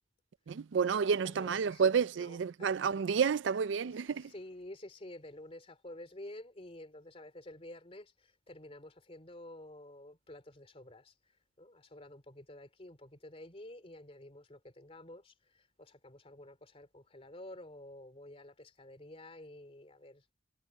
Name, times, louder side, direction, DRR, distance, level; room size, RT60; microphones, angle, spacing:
voice 1, 0.5-4.3, right 6 dB, 75° right, 0.4 m, -30 dB
voice 2, 1.2-2.9 3.8-20.3, left 1 dB, 30° left, 3.0 m, -51 dB
head